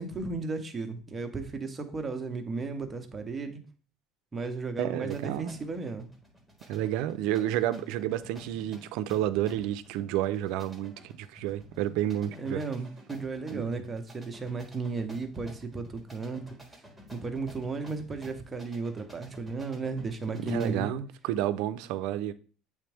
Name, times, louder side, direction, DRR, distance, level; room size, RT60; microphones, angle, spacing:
voice 1, 0.0-3.6 4.3-6.1 12.2-16.4 17.1-20.9, right 4 dB, 20° right, 0.8 m, -34 dB
voice 2, 4.8-5.5 6.7-12.6 13.5-13.7 20.4-22.3, right 12 dB, 75° right, 0.4 m, -30 dB
sound 1, 5.1-20.9, right 1 dB, ahead, 1.3 m, -52 dB
8.2 x 3.4 x 3.4 m
cardioid pair, 135°, 0 cm